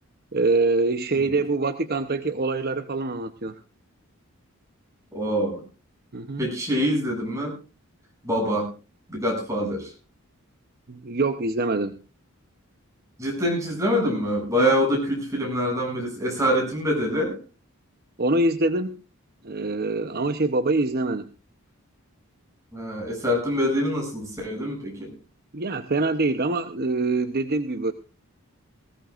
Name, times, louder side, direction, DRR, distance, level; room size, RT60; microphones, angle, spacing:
voice 1, 0.3-3.6 6.1-6.5 10.9-12.0 14.5-14.7 18.2-19.0 19.4-21.3 25.5-27.9, right 2 dB, 45° right, 8 dB, 0.8 m, -24 dB
voice 2, 5.1-5.6 6.4-7.6 8.2-8.7 9.1-9.9 13.2-17.4 22.7-25.1, equal, 15° right, -1 dB, 7.5 m, -25 dB
20.5 x 17.0 x 2.5 m, 0.32 s
head